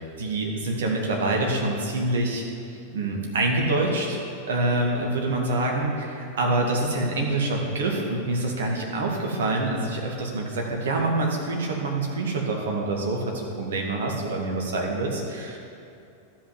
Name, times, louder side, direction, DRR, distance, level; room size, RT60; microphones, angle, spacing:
voice 1, 0.0-2.4 2.9-4.2 4.5-15.6, right 2 dB, 60° right, -1 dB, 2.0 m, -26 dB
12.5 x 5.7 x 8.1 m, 2.7 s
figure-of-eight pair, 90°, 0 cm